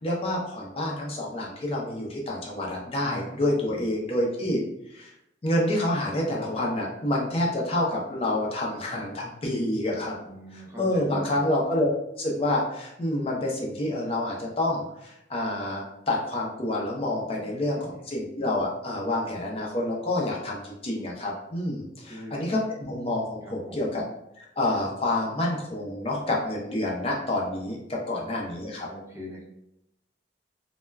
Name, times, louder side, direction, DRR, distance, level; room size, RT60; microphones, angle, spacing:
voice 1, 0.0-4.6 4.9-5.1 5.4-10.1 10.5-11.9 12.2-24.0 24.4-28.9, left 1 dB, 35° left, -2 dB, 0.5 m, -28 dB
voice 2, 3.0-3.8 10.2-11.4 17.4-18.0 22.1-22.4 23.4-23.9 28.1-28.2 28.9-29.4, equal, 15° right, -4 dB, 0.5 m, -42 dB
2.2 x 2.1 x 3.3 m, 0.81 s
head